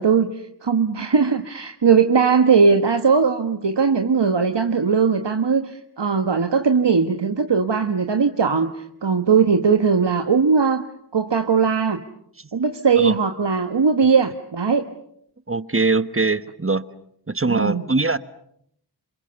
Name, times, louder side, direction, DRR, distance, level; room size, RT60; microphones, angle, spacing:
voice 1, 0.0-10.9 11.1-12.0 12.5-14.9 17.5-17.8, right 5 dB, 75° right, 7 dB, 1.5 m, -19 dB
voice 2, 15.5-16.8 17.3-18.2, right 3 dB, 30° right, 13 dB, 1.3 m, -22 dB
28.5 x 27.0 x 7.0 m, 0.72 s
wide cardioid pair, 50°, 42 cm